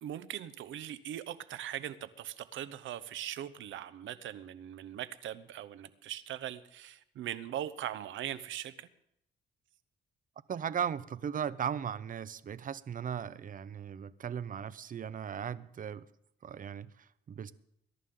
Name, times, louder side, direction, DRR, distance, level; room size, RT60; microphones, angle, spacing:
voice 1, 0.0-8.9, right 11 dB, 75° right, 0.9 m, -40 dB
voice 2, 10.5-16.1 16.4-17.5, right 8 dB, 45° right, 0.7 m, -37 dB
21.5 x 11.0 x 3.8 m
cardioid pair, 90°, 20 cm